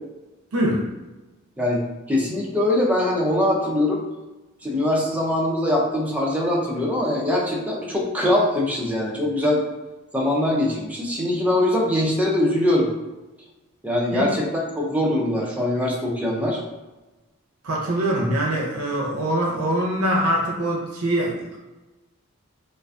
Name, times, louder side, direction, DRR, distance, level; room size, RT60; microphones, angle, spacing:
voice 1, 0.5-0.9 14.1-14.3 17.6-21.6, right 1 dB, 90° right, -2 dB, 0.5 m, -23 dB
voice 2, 2.1-4.0 4.6-9.6 10.1-12.9 13.8-16.6, left 1 dB, 5° right, -3 dB, 0.4 m, -22 dB
2.4 x 2.2 x 2.4 m, 1.1 s
head